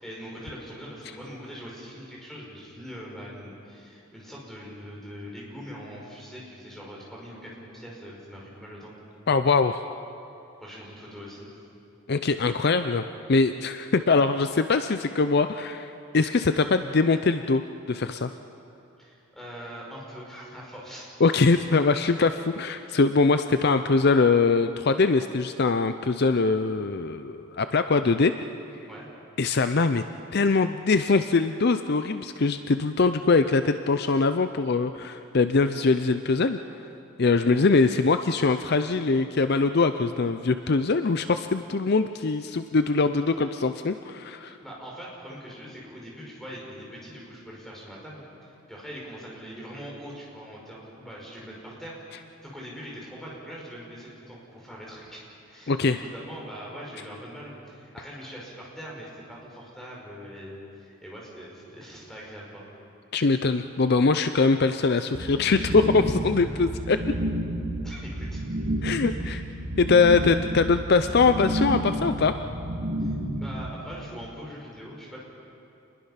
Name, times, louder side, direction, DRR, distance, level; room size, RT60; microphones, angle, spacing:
voice 1, 0.0-8.9 10.6-11.6 19.0-21.4 28.9-29.1 44.6-52.0 52.4-62.6 67.8-68.5 69.2-69.4 73.0-75.2, equal, ahead, -4 dB, 5.4 m, -42 dB
voice 2, 9.3-9.8 12.1-13.0 13.3-17.6 17.9-18.3 21.2-28.3 29.4-30.0 30.3-36.6 37.2-44.5 55.7-56.0 63.1-67.0 68.8-69.4 69.8-72.3, left 4 dB, 50° left, 9 dB, 0.5 m, -22 dB
sound 1, 65.1-73.7, right 1 dB, 60° right, 4.0 m, -30 dB
28.5 x 21.5 x 5.8 m, 2.7 s
head